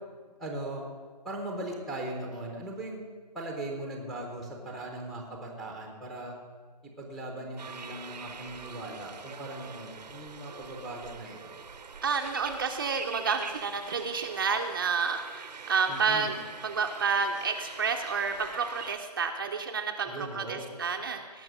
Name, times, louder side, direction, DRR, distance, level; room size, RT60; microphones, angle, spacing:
voice 1, 0.4-0.8 1.2-3.0 3.3-6.4 7.0-11.6 15.9-16.3 20.0-20.7, right 1 dB, ahead, 1 dB, 0.8 m, -39 dB
sound 1, 7.6-19.0, right 5 dB, 85° right, 0.8 m, -44 dB
voice 2, 12.0-16.4 16.6-20.1 20.3-21.4, right 5 dB, 30° right, 4 dB, 0.6 m, -30 dB
18.0 x 6.1 x 6.1 m, 1.5 s
hypercardioid pair, 165°, 21 cm